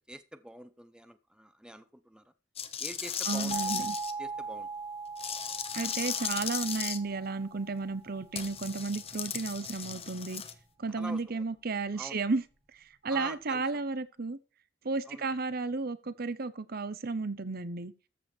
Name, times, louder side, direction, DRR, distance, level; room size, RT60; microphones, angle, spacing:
voice 1, 0.1-2.3 2.8-3.9 4.2-4.7 10.9-11.4 11.9-12.2 13.1-13.8 15.1-15.3, right 1 dB, 5° right, 0.8 m, -46 dB
sound 1, 2.6-4.1 5.2-7.0 8.4-10.5, left 8 dB, 30° left, 1.3 m, -36 dB
voice 2, 3.3-4.0 5.7-10.4 10.8-12.4 13.0-14.4 14.8-17.9, right 3 dB, 55° right, 0.9 m, -33 dB
sound 2, 3.5-8.2, right 4 dB, 35° right, 1.7 m, -40 dB
14.0 x 7.3 x 4.5 m
head